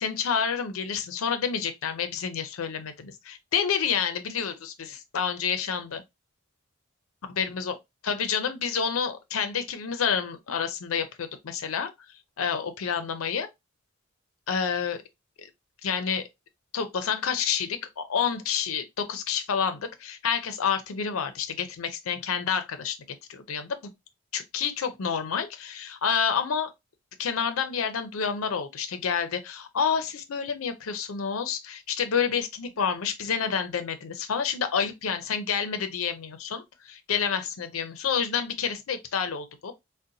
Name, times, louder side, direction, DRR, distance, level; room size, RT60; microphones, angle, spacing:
voice 1, 0.0-6.0 7.4-7.7 8.0-11.9 12.4-13.5 14.5-15.0 15.4-15.5 15.8-16.3 16.7-23.0 23.3-23.8 24.3-26.7 27.2-39.7, left 7 dB, 85° left, 0.5 m, -29 dB
3.8 x 2.1 x 2.5 m
head